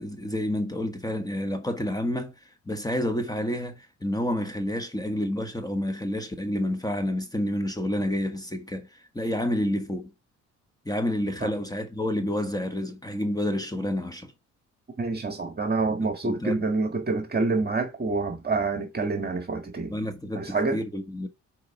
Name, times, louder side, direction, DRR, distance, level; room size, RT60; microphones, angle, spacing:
voice 1, 0.0-2.3 2.7-10.1 10.8-14.3 16.0-16.6 19.9-21.3, left 1 dB, 10° left, 1.3 m, -29 dB
voice 2, 15.0-19.9 20.3-20.8, right 3 dB, 30° right, 1.6 m, -27 dB
6.8 x 4.6 x 5.5 m
cardioid pair, 90°, 30 cm